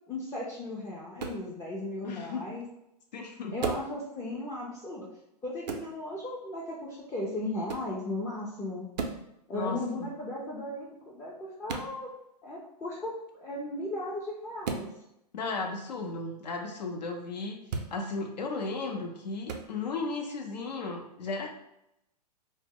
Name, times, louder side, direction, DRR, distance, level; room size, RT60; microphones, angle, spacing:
voice 1, 0.1-2.6 3.5-5.1 5.4-8.9 9.5-12.1 12.4-14.9, left 1 dB, 15° left, -5 dB, 0.4 m, -36 dB
sound 1, 1.2-1.4 3.6-3.9 5.6-5.9 7.7-7.9 8.9-9.2 11.7-11.9 14.6-14.9 17.6-17.9 19.5-19.7, right 5 dB, 80° right, 0.5 m, -34 dB
voice 2, 2.0-2.5 3.1-3.6 9.5-10.1 15.3-17.6 17.9-21.5, left 3 dB, 90° left, 3 dB, 0.6 m, -35 dB
2.0 x 2.0 x 3.5 m, 0.83 s
hypercardioid pair, 125°, 21 cm